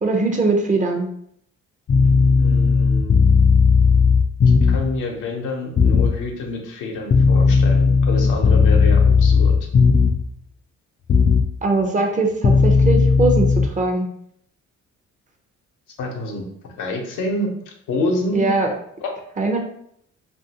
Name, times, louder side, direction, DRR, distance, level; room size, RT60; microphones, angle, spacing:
voice 1, 0.0-1.1 11.6-14.1 18.3-18.7 19.4-19.6, right 3 dB, 25° right, 3 dB, 0.6 m, -21 dB
sound 1, 1.9-5.0 5.8-6.2 7.1-10.3 11.1-11.5 12.4-13.7, left 5 dB, 35° left, 0.4 m, -15 dB
voice 2, 2.4-3.2 4.4-9.5 16.0-16.5 16.8-17.5 17.9-18.5 19.0-19.1, left 2 dB, 85° left, 1 dB, 0.8 m, -27 dB
2.9 x 2.5 x 2.8 m, 0.69 s
cardioid pair, 90°, 30 cm